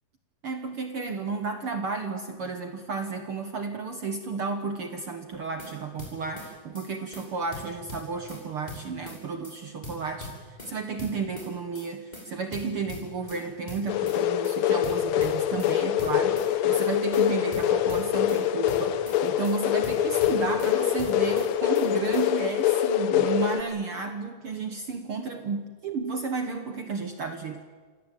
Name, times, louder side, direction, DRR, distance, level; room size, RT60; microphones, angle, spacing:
voice 1, 0.4-27.6, right 4 dB, 60° right, 7 dB, 1.4 m, -32 dB
sound 1, 5.3-5.7 6.0-6.5 6.7-6.9 7.1-7.2 7.5-8.4 8.7-9.2 9.4-9.6 9.8-10.7 11.0-11.5 11.7-11.9 12.1-12.2 12.5-13.4 13.7-14.2 14.4-14.6 14.8-15.7 16.0-16.5 16.7-16.9 17.1-17.2 17.5-18.4 18.7-19.2 19.4-19.6 19.8-20.7 21.0-21.5 21.7-21.9 22.1-22.2, left 1 dB, 10° left, 6.5 m, -41 dB
sound 2, 13.9-23.6, left 11 dB, 70° left, 1.8 m, -25 dB
27.0 x 18.0 x 9.0 m, 1.5 s
omnidirectional pair, 4.2 m